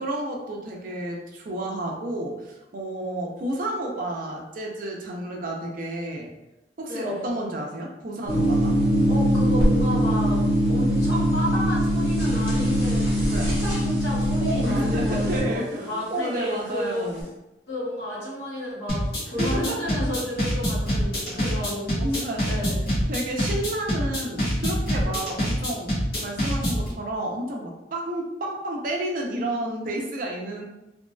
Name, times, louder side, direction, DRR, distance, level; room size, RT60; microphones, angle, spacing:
voice 1, 0.0-6.3 6.8-8.8 13.2-13.5 14.4-17.3 19.4-19.8 20.7-20.9 21.3-22.5 23.1-25.9 26.2-30.6, right 1 dB, 50° right, 0 dB, 0.5 m, -31 dB
voice 2, 6.9-7.4 9.1-17.1 17.7-22.0 22.4-22.9, equal, 80° left, -6 dB, 1.2 m, -32 dB
sound 1, 8.3-15.4, equal, 15° right, 1.0 m, -22 dB
sound 2, 18.9-26.9, equal, 60° left, 1.2 m, -25 dB
2.9 x 2.7 x 2.2 m, 0.95 s
head